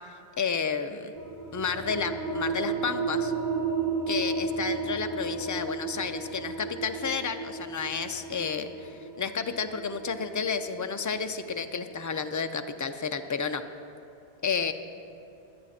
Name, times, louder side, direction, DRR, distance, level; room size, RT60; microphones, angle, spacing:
voice 1, 0.4-1.1 1.5-3.3 4.1-13.6 14.4-14.7, left 5 dB, 30° left, 8 dB, 0.4 m, -31 dB
sound 1, 1.1-12.4, right 4 dB, 45° right, 1.5 m, -33 dB
24.5 x 8.6 x 4.3 m, 2.6 s
omnidirectional pair, 1.0 m